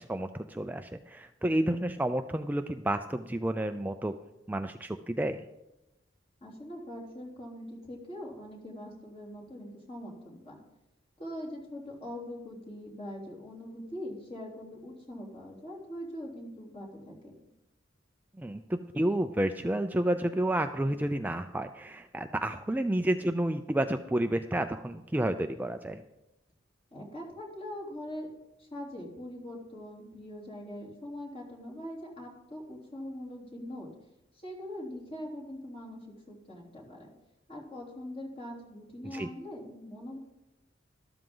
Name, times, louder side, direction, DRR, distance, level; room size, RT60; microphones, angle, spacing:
voice 1, 0.0-4.1 4.5-5.4 18.4-26.0 39.0-39.3, right 1 dB, 10° right, 7 dB, 0.4 m, -30 dB
voice 2, 6.4-10.6 11.2-17.4 26.9-28.3 28.6-33.9 34.3-36.0 36.3-37.1 37.5-40.2, left 1 dB, 30° left, -3 dB, 3.4 m, -42 dB
13.5 x 12.5 x 3.8 m, 0.95 s
head